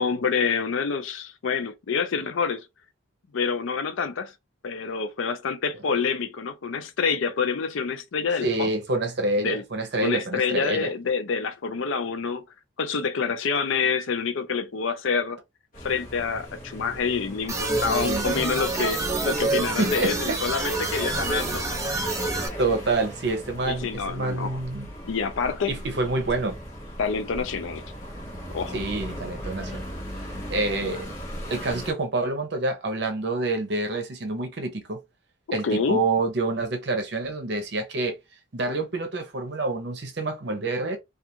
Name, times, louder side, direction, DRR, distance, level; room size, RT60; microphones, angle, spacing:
voice 1, 0.0-2.7 3.3-4.3 4.6-8.7 9.4-9.6 10.0-12.4 12.8-15.4 15.8-21.6 23.7-24.6 25.1-25.7 27.0-27.8 28.5-28.8 35.5-36.0, left 5 dB, 75° left, 0.5 m, -27 dB
voice 2, 8.4-10.9 18.0-18.3 19.8-20.7 22.6-24.9 25.7-26.6 28.7-29.8 30.5-31.1 31.5-35.0 35.5-38.2 38.5-41.0, right 2 dB, 55° right, 0.7 m, -27 dB
sound 1, 15.7-31.9, equal, 40° left, 0.9 m, -38 dB
sound 2, 17.5-22.5, right 2 dB, 15° right, 0.5 m, -27 dB
2.4 x 2.4 x 2.8 m
head